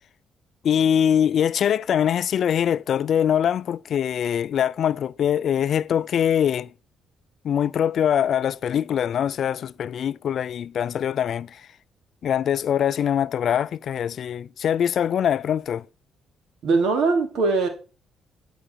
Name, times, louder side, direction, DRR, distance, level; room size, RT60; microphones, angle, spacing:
voice 1, 0.6-6.7 7.4-11.6 12.2-15.8, left 9 dB, 65° left, 0.4 m, -23 dB
voice 2, 16.6-17.7, right 3 dB, 75° right, 2.7 m, -21 dB
11.0 x 6.0 x 4.6 m
cardioid pair, 90°, 0 cm